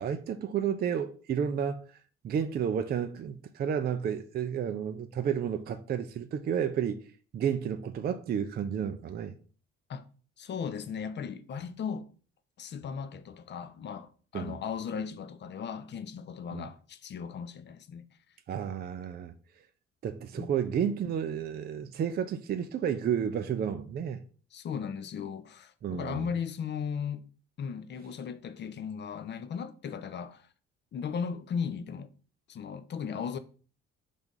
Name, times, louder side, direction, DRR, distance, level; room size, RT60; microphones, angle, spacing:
voice 1, 0.0-1.8 2.2-7.0 7.3-9.3 14.3-14.6 16.5-16.7 18.5-19.3 20.0-24.2 25.8-26.3, right 8 dB, 30° right, 0.5 m, -31 dB
voice 2, 10.4-12.1 12.6-18.1 20.4-20.5 24.5-27.3 27.6-30.5 30.9-32.1 32.5-33.4, left 7 dB, 35° left, 0.6 m, -36 dB
4.0 x 3.4 x 3.8 m
figure-of-eight pair, 45°, 33 cm